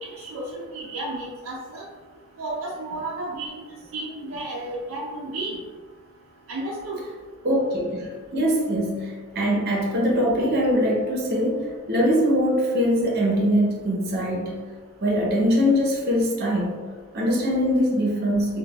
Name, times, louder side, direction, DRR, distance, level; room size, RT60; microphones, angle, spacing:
voice 1, 0.2-1.9 2.4-3.6 3.9-5.6 6.5-7.0, right 2 dB, 80° right, -3 dB, 0.5 m, -32 dB
voice 2, 7.4-14.6 15.0-16.8 17.1-18.6, equal, 50° right, -3 dB, 0.7 m, -22 dB
3.9 x 2.3 x 2.3 m, 1.4 s
head